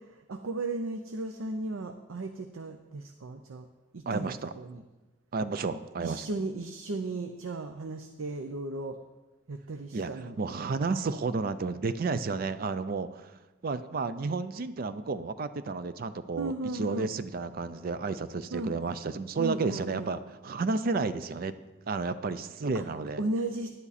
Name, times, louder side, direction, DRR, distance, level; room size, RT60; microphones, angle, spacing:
voice 1, 0.0-3.7 3.9-4.8 6.0-9.0 9.5-10.4 16.3-17.1 18.5-18.8 19.4-20.1 22.7-22.8 23.2-23.7, right 2 dB, 90° right, 7 dB, 0.6 m, -35 dB
voice 2, 4.1-4.5 5.3-6.3 9.9-13.3 13.6-21.5 21.9-23.2, right 4 dB, 45° right, 12 dB, 0.4 m, -32 dB
10.5 x 9.8 x 4.1 m, 1.1 s
head